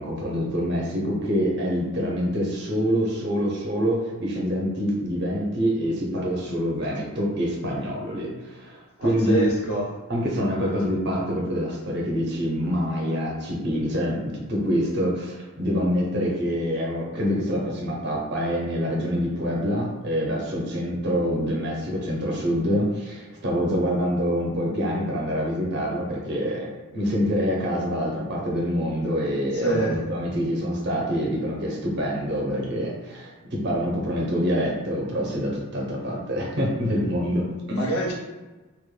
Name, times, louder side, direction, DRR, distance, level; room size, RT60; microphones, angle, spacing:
voice 1, 0.0-9.5 10.1-37.9, equal, 50° right, -3 dB, 0.6 m, -26 dB
voice 2, 9.0-9.9 29.5-30.0 37.7-38.1, right 2 dB, 75° left, -2 dB, 0.7 m, -26 dB
2.1 x 2.1 x 3.1 m, 1.2 s
head